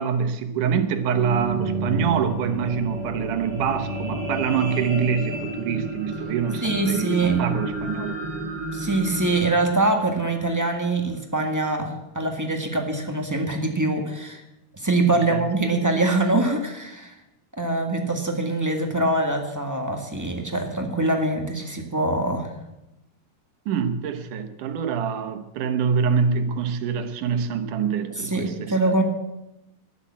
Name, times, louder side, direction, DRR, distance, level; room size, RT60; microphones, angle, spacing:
voice 1, 0.0-8.2 15.3-15.4 23.7-28.7, right 6 dB, 90° right, 8 dB, 2.7 m, -25 dB
sound 1, 0.9-11.3 11.9-12.0, right 2 dB, 30° right, 4.1 m, -31 dB
voice 2, 6.6-7.4 8.7-14.4 14.8-17.2 17.6-22.5 28.1-29.0, right 2 dB, 10° right, 2 dB, 0.9 m, -24 dB
13.0 x 11.5 x 7.5 m, 0.93 s
omnidirectional pair, 3.5 m